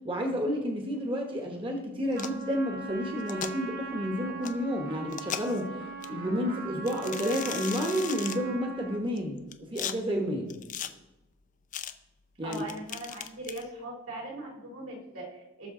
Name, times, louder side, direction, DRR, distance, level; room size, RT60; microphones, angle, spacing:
voice 1, 0.0-5.8 6.1-10.5 12.4-12.6, equal, 25° right, 2 dB, 1.1 m, -31 dB
sound 1, 2.1-2.4 3.2-3.5 4.4-4.5 5.1-5.6 6.0-6.1 6.9-8.4 9.2-9.9 10.5-10.9 11.7-11.9 12.5-13.6, left 9 dB, 35° left, 0.5 m, -37 dB
Trumpet, 2.1-9.1, right 5 dB, 45° right, 1.3 m, -40 dB
voice 2, 12.4-15.7, right 1 dB, 80° right, -3 dB, 3.7 m, -40 dB
18.5 x 6.4 x 3.8 m, 1.0 s
head